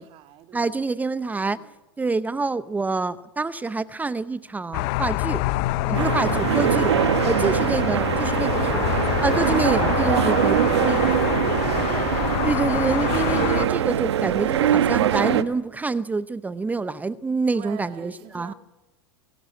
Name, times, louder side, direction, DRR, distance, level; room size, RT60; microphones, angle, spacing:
voice 1, 0.0-0.8 1.3-1.7 5.6-6.8 10.0-12.3 17.5-18.5, right 11 dB, 45° right, 2.3 m, -44 dB
voice 2, 0.5-5.4 5.9-6.9 7.3-8.9 9.2-11.2 12.4-18.5, right 3 dB, 10° right, 0.7 m, -27 dB
sound 1, 4.7-13.7, left 18 dB, 55° left, 0.8 m, -26 dB
sound 2, 5.9-15.4, right 10 dB, 85° right, 1.2 m, -22 dB
24.0 x 13.0 x 9.6 m
hypercardioid pair, 115°, 14 cm